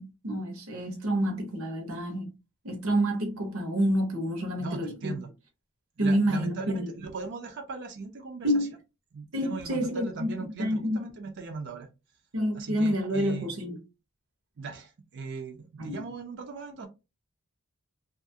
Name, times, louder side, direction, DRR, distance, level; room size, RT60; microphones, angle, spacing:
voice 1, 0.0-2.3 2.6-5.1 6.0-6.9 8.4-8.7 9.3-10.3 10.6-11.0 12.3-13.8 15.8-16.1, equal, 90° right, 0.9 m, -28 dB
voice 2, 4.6-5.3 6.0-8.5 9.1-11.9 12.5-13.5 14.6-16.9, right 4 dB, 55° right, 0.5 m, -39 dB
2.7 x 2.4 x 2.7 m
head